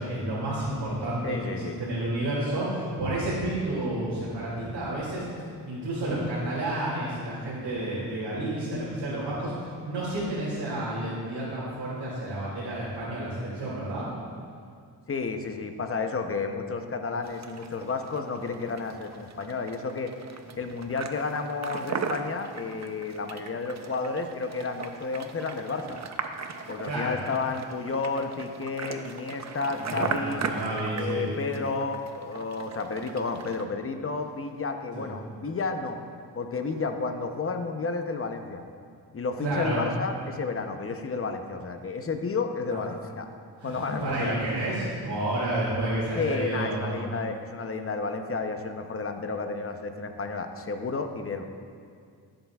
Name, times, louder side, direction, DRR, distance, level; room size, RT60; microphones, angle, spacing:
voice 1, 0.0-5.3 5.7-14.1 26.9-27.2 29.8-31.2 34.9-35.1 39.4-39.8 42.7-42.8 43.6-47.0, right 1 dB, 75° right, -10 dB, 2.4 m, -30 dB
voice 2, 1.2-1.8 15.1-20.1 20.6-26.0 26.7-30.4 30.9-36.0 36.4-38.6 39.1-43.3 43.6-44.4 46.2-51.4, left 4 dB, 35° left, 6 dB, 0.7 m, -31 dB
sound 1, 17.2-33.7, right 5 dB, 40° right, 0.6 m, -38 dB
14.5 x 7.8 x 2.4 m, 2.2 s
cardioid pair, 90°, 42 cm